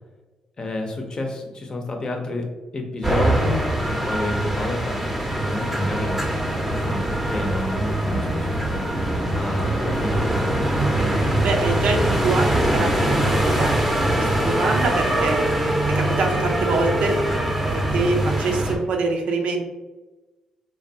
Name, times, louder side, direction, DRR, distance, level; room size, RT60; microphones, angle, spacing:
voice 1, 0.6-2.5 2.7-6.4 6.7-8.8 9.3-10.3, left 2 dB, 40° left, 2 dB, 0.7 m, -30 dB
sound 1, 3.0-18.8, right 1 dB, 5° right, 0.7 m, -23 dB
voice 2, 11.4-13.7 14.0-17.2 17.6-19.6, right 3 dB, 75° right, 2 dB, 0.5 m, -25 dB
3.3 x 2.2 x 2.7 m, 1.1 s
cardioid pair, 65°, 2 cm